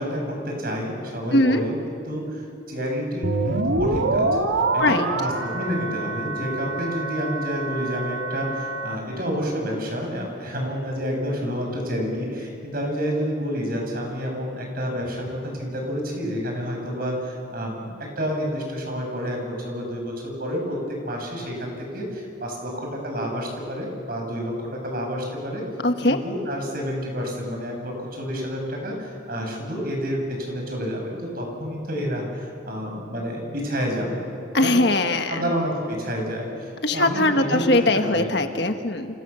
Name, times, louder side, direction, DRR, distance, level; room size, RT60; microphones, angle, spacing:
voice 1, 0.0-1.8 2.1-4.3 4.7-17.9 18.2-20.8 21.0-25.6 26.0-34.2 34.6-34.7 35.3-38.3, equal, 50° right, 1 dB, 7.1 m, -29 dB
voice 2, 1.3-1.7 4.8-5.1 25.8-26.2 34.5-35.4 36.8-39.1, left 2 dB, 55° left, 6 dB, 1.5 m, -21 dB
sound 1, 3.2-9.0, right 2 dB, 75° right, 2.0 m, -26 dB
29.5 x 28.5 x 7.0 m, 2.5 s
head